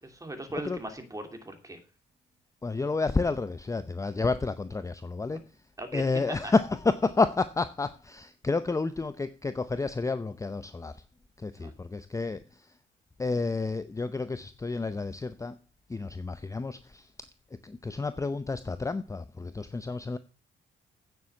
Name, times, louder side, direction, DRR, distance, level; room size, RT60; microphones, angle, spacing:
voice 1, 0.0-1.8 5.8-6.5 11.6-11.7, right 1 dB, 15° right, 2.8 m, -39 dB
voice 2, 2.6-5.4 5.9-11.0 11.4-12.7 13.2-15.6 15.9-17.1 17.6-20.2, left 3 dB, 15° left, 0.6 m, -30 dB
9.3 x 7.2 x 7.2 m
cardioid pair, 90°, 20 cm